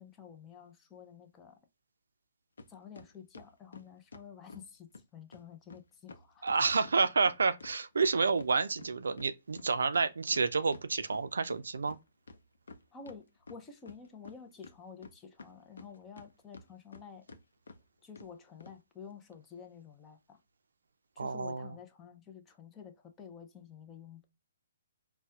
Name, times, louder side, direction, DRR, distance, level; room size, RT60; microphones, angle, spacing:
voice 1, 0.0-1.6 2.7-6.5 12.9-17.2 18.0-20.4 21.2-24.2, left 6 dB, 15° left, 0.5 m, -50 dB
sound 1, 2.6-2.7 3.0-4.7 4.9-5.0 5.3-5.4 5.7-5.8 6.1-8.5 8.8-11.6 11.9-12.0 12.3-13.2 13.5-14.4 14.6-16.3 16.5-17.0 17.3-17.4 17.7-17.8 18.2-18.3 18.6-18.8, left 3 dB, 85° left, 0.6 m, -50 dB
voice 2, 6.4-12.0 21.2-21.7, right 4 dB, 85° right, 0.4 m, -29 dB
4.1 x 2.1 x 2.3 m
hypercardioid pair, 155°, 0 cm